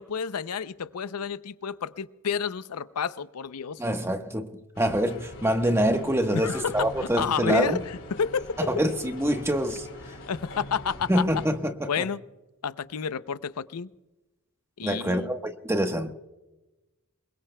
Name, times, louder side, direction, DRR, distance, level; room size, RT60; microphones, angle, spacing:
voice 1, 0.0-3.8 6.3-6.9 7.2-7.8 8.1-8.7 10.3-11.2 11.9-12.2 12.6-13.9 14.8-15.3, left 6 dB, 90° left, 0.6 m, -30 dB
voice 2, 3.8-7.8 8.6-9.9 11.1-12.1 14.8-16.1, equal, 10° right, 1.2 m, -25 dB
sound 1, 4.7-11.5, left 1 dB, 60° left, 3.6 m, -44 dB
27.0 x 22.0 x 2.2 m
head